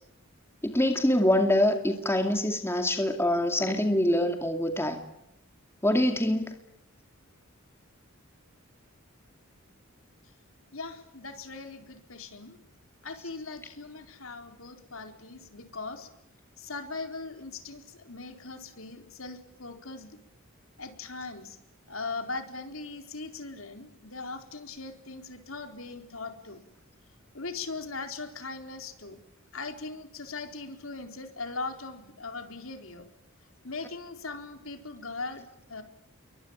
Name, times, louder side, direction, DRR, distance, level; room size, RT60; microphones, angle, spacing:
voice 1, 0.6-5.0 5.8-6.5, left 1 dB, 10° left, 5 dB, 2.4 m, -25 dB
voice 2, 10.7-12.6 13.0-16.1 16.6-20.2 20.8-21.6 21.9-26.6 27.3-29.2 29.5-33.1 33.6-35.8, left 3 dB, 70° left, 6 dB, 4.1 m, -40 dB
28.5 x 23.5 x 8.9 m, 0.79 s
head